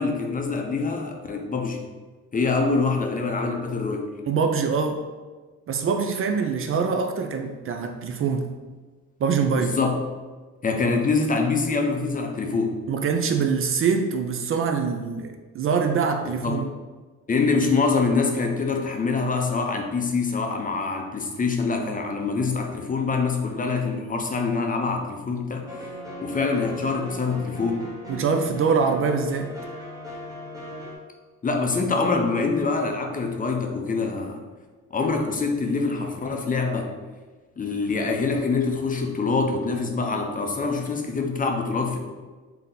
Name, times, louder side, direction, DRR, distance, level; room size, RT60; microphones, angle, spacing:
voice 1, 0.0-1.8 2.3-4.2 9.6-10.0 10.6-12.8 16.4-16.6 17.3-25.9 26.2-27.9 31.4-34.4 34.9-36.9 37.6-42.0, left 4 dB, 30° left, 3 dB, 0.6 m, -25 dB
voice 2, 4.3-5.0 5.7-8.5 9.2-9.8 12.9-16.7 28.1-29.5, right 5 dB, 45° right, 5 dB, 0.4 m, -24 dB
sound 1, 25.7-31.0, equal, 10° right, 1.0 m, -38 dB
3.6 x 2.8 x 3.8 m, 1.3 s
cardioid pair, 90°, 30 cm